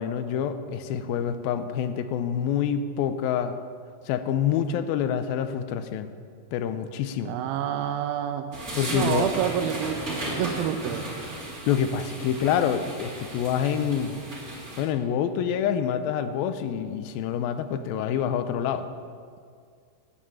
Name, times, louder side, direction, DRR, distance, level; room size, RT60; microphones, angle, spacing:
voice 1, 0.0-3.6 4.1-6.1 6.5-7.4 8.7-9.3 11.7-14.2 14.8-18.9, left 8 dB, 85° left, 10 dB, 2.5 m, -27 dB
voice 2, 7.3-8.5 8.9-11.0, right 10 dB, 85° right, 6 dB, 2.5 m, -28 dB
sound 1, 8.5-14.8, right 1 dB, 25° right, 2.5 m, -35 dB
12.5 x 7.5 x 8.8 m, 2.1 s
omnidirectional pair, 4.3 m